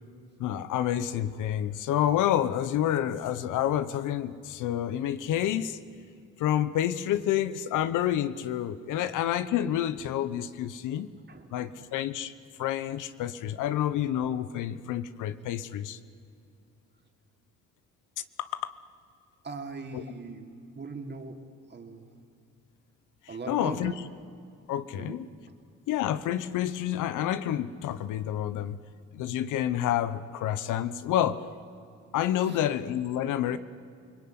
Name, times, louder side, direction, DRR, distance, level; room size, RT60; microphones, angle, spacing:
voice 1, 0.4-5.8 6.4-11.1 11.5-12.3 12.6-16.0 18.4-18.7 19.9-20.0 23.5-23.9 24.7-25.2 25.9-28.8 29.1-31.4 32.1-33.6, left 11 dB, 90° left, 14 dB, 1.1 m, -29 dB
voice 2, 19.4-22.1 23.3-24.0 24.9-25.2 32.4-32.6, right 4 dB, 35° right, 4 dB, 3.4 m, -40 dB
28.5 x 20.5 x 9.6 m, 2.5 s
cardioid pair, 90°, 30 cm